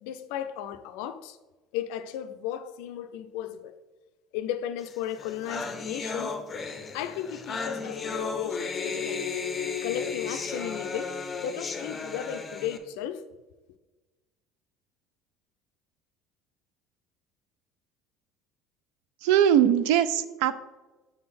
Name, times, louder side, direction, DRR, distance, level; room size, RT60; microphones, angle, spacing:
voice 1, 0.0-1.4 1.7-3.8 4.3-6.4 6.9-9.3 9.8-13.2, left 10 dB, 80° left, 0.4 m, -35 dB
sound 1, 4.9-5.0 5.2-12.8, left 5 dB, 20° left, 0.5 m, -34 dB
voice 2, 19.2-20.6, right 10 dB, 85° right, 0.4 m, -21 dB
6.8 x 3.7 x 4.3 m
cardioid pair, 150°, 0 cm